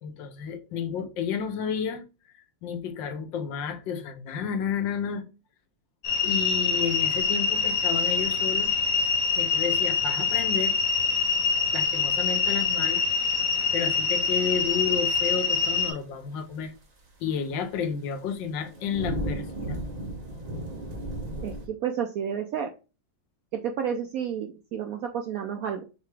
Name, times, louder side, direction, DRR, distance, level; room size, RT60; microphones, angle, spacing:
voice 1, 0.0-2.0 2.3-5.2 6.2-8.7 9.3-10.8 11.7-13.0 13.7-16.7 17.2-19.8, left 7 dB, 85° left, 1.5 m, -31 dB
sound 1, 6.0-15.9, left 5 dB, 55° left, 1.2 m, -25 dB
sound 2, 7.1-9.1 9.4-10.1 10.4-10.6 11.3-11.4 11.8-12.1 12.6-12.7 13.5-13.6 13.9-15.7 16.0-16.1 16.5-17.2 17.9-18.1 18.4-21.7, right 1 dB, 40° right, 0.6 m, -36 dB
voice 2, 21.4-22.7 23.5-25.8, right 8 dB, 75° right, 0.8 m, -31 dB
4.7 x 3.3 x 3.3 m
omnidirectional pair, 2.0 m